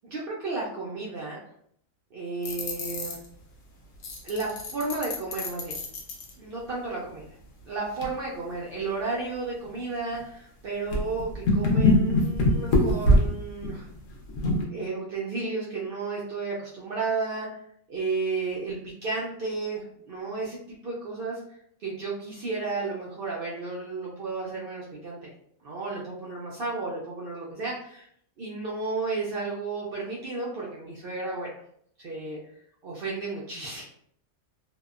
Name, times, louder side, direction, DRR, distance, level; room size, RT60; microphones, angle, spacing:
voice 1, 0.0-1.4 2.1-3.2 4.2-5.8 6.3-7.2 7.6-13.9 14.7-17.6 17.9-25.3 25.6-28.1 28.4-31.5 32.0-32.4 32.8-33.9, right 3 dB, 75° right, -4 dB, 0.5 m, -33 dB
sound 1, 2.4-3.3 4.0-6.3 8.0-8.1 8.5-8.6 9.7-9.8 10.1-10.2 10.9-14.6, left 1 dB, 70° left, 1.0 m, -23 dB
2.8 x 2.0 x 2.4 m, 0.67 s
omnidirectional pair, 1.5 m